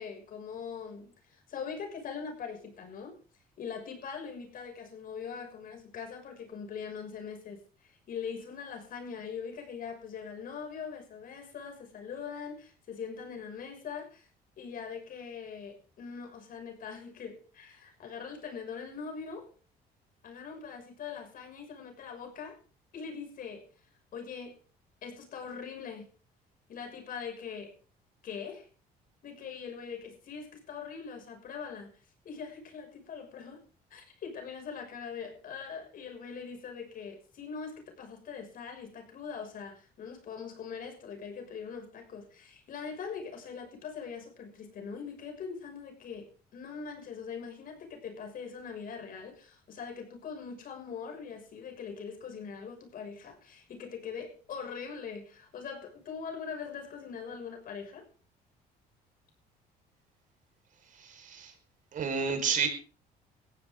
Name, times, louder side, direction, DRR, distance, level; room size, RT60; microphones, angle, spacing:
voice 1, 0.0-3.2 3.6-14.3 14.6-19.5 20.2-22.6 22.9-23.7 24.1-24.6 25.0-26.1 26.7-27.7 28.2-28.7 29.2-31.9 32.2-33.6 33.9-58.0, left 6 dB, 55° left, 3 dB, 6.4 m, -42 dB
voice 2, 60.9-61.5 61.9-62.7, right 6 dB, 50° right, 6 dB, 5.1 m, -31 dB
19.0 x 15.0 x 3.8 m, 0.40 s
cardioid pair, 110°, 17 cm